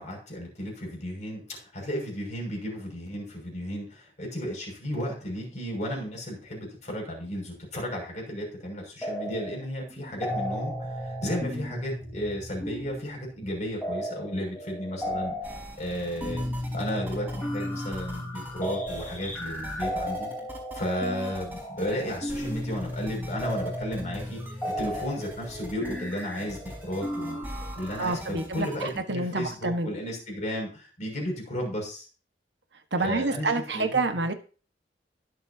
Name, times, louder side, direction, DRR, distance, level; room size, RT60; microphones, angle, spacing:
voice 1, 0.0-15.3 15.8-16.4 16.7-20.3 20.7-27.4 27.7-32.1 33.0-34.0, equal, 45° left, 0 dB, 6.3 m, -34 dB
sound 1, 9.0-9.6 9.9-28.2, equal, 10° left, 3.8 m, -35 dB
sound 2, 15.4-29.0, equal, 10° right, 5.3 m, -43 dB
voice 2, 28.0-29.9 32.9-34.3, right 3 dB, 85° right, 7 dB, 1.4 m, -28 dB
22.0 x 7.4 x 2.8 m, 0.36 s
head